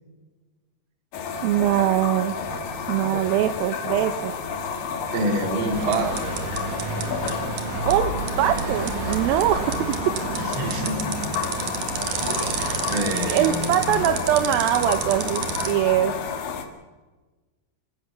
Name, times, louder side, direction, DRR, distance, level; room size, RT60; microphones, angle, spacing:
sound 1, 1.1-16.6, left 6 dB, 65° left, 3.3 m, -31 dB
voice 1, 1.4-2.3 2.9-4.3 7.9-9.7 10.6-10.8 12.6-12.8 13.3-16.1, right 12 dB, 75° right, 10 dB, 2.4 m, -22 dB
voice 2, 5.1-6.3 10.3-11.2 12.9-14.1, right 1 dB, 35° right, 5 dB, 2.7 m, -27 dB
sound 2, 5.7-15.7, right 5 dB, 55° right, 3.0 m, -30 dB
27.0 x 15.5 x 7.0 m, 1.3 s
omnidirectional pair, 4.5 m